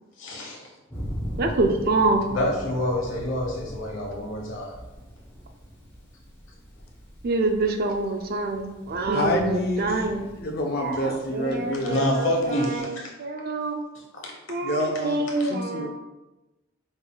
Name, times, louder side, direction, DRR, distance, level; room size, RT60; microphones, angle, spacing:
voice 1, 0.2-0.7 2.3-4.7 11.8-13.1 14.1-14.3 15.4-15.5, left 1 dB, 90° left, -1 dB, 1.1 m, -27 dB
Thunder, 0.9-12.8, equal, 10° left, 1.0 m, -40 dB
voice 2, 1.4-2.4 7.2-10.3 10.8-13.8 14.5-15.9, right 2 dB, 50° right, 5 dB, 0.4 m, -26 dB
voice 3, 9.1-12.0 14.6-15.9, left 1 dB, 55° left, 1 dB, 0.7 m, -28 dB
4.9 x 3.8 x 2.3 m, 1.0 s
head